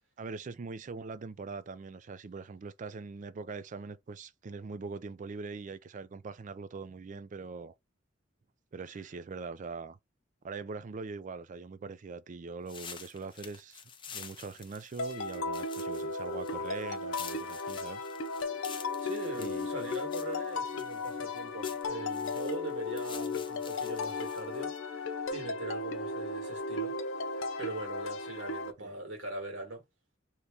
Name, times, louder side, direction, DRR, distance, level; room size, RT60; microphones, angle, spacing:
voice 1, 0.2-7.7 8.7-10.0 10.4-18.0 19.4-19.7 28.8-28.9, right 4 dB, 40° right, 0.4 m, -42 dB
sound 1, 12.7-24.8, left 6 dB, 25° left, 0.6 m, -49 dB
sound 2, 15.0-28.7, left 3 dB, 85° left, 0.6 m, -35 dB
voice 2, 19.0-27.0 27.2-29.8, right 2 dB, 80° right, 1.7 m, -41 dB
3.0 x 2.7 x 3.5 m
head